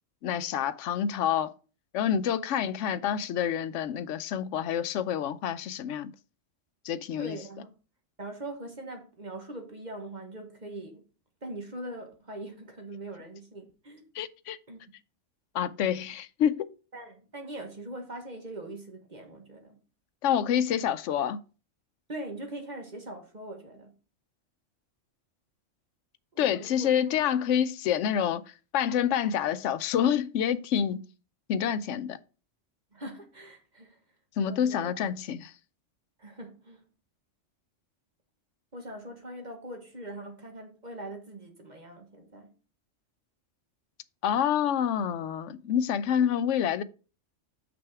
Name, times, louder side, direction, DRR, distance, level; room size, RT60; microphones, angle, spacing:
voice 1, 0.2-1.5 1.9-6.1 6.8-7.4 14.1-14.6 15.5-16.7 20.2-21.4 26.4-28.4 28.7-31.1 31.5-32.2 34.4-35.5 44.2-46.8, left 9 dB, 75° left, 0.9 m, -27 dB
voice 2, 7.2-7.7 8.2-11.0 11.4-14.1 14.7-14.8 16.9-19.8 22.1-23.9 26.3-27.2 32.9-34.0 34.4-35.1 36.2-36.8 38.7-42.5 46.2-46.3, right 1 dB, 35° right, 1.4 m, -42 dB
6.1 x 6.1 x 4.7 m
omnidirectional pair, 1.3 m